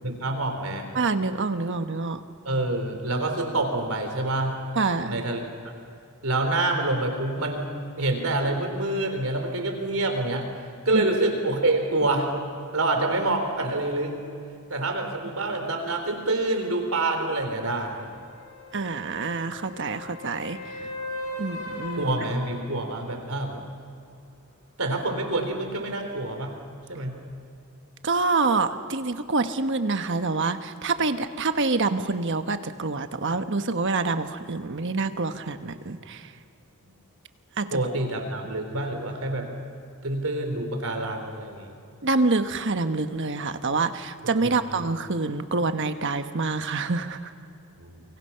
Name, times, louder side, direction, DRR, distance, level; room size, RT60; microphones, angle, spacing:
voice 1, 0.0-0.9 2.4-4.6 5.0-5.7 6.2-10.5 10.9-12.3 12.7-14.1 14.7-18.1 20.8-20.9 22.0-23.6 24.8-26.5 26.9-27.2 37.7-39.5 40.0-41.7 44.4-44.8 47.8-48.0, right 2 dB, 70° right, 4 dB, 3.9 m, -27 dB
voice 2, 0.9-2.2 4.7-5.1 10.9-11.0 18.7-20.8 21.4-22.1 28.0-36.3 37.6-37.8 42.0-47.3, right 3 dB, 55° right, 9 dB, 1.2 m, -26 dB
sound 1, 17.5-23.2 27.3-27.4, left 2 dB, 80° left, 6.7 m, -39 dB
28.5 x 24.5 x 5.8 m, 2.6 s
head